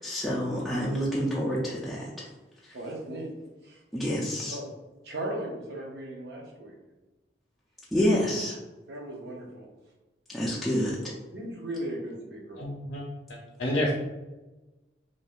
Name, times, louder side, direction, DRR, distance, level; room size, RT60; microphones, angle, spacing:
voice 1, 0.0-2.0 3.9-4.6 7.9-8.6 10.3-11.0, equal, ahead, -8 dB, 0.4 m, -27 dB
voice 2, 2.7-3.3 3.6-3.8 4.5-4.7 5.0-6.7 8.9-9.7 11.3-12.6, right 1 dB, 60° right, 0 dB, 0.6 m, -37 dB
voice 3, 12.6-13.0 13.3-13.9, left 1 dB, 55° left, -4 dB, 0.6 m, -29 dB
3.4 x 2.5 x 2.3 m, 1.1 s
head